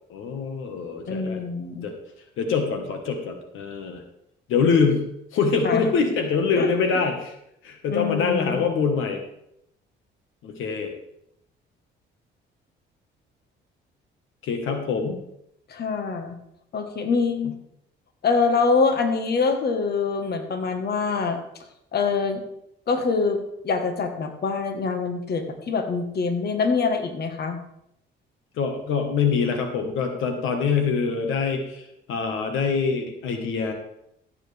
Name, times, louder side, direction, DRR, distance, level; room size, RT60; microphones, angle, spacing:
voice 1, 0.1-1.4 1.8-1.9 2.4-4.0 4.5-7.3 7.6-9.2 10.4-10.9 14.4-15.2 17.4-17.5 28.5-33.7, left 5 dB, 85° left, 5 dB, 1.4 m, -24 dB
voice 2, 1.1-1.9 5.6-5.8 6.6-6.7 7.9-8.6 15.7-16.3 16.7-17.5 18.2-21.4 21.9-22.4 22.9-27.6, left 4 dB, 55° left, 6 dB, 1.4 m, -24 dB
15.0 x 7.7 x 3.4 m, 0.77 s
cardioid pair, 90°, 20 cm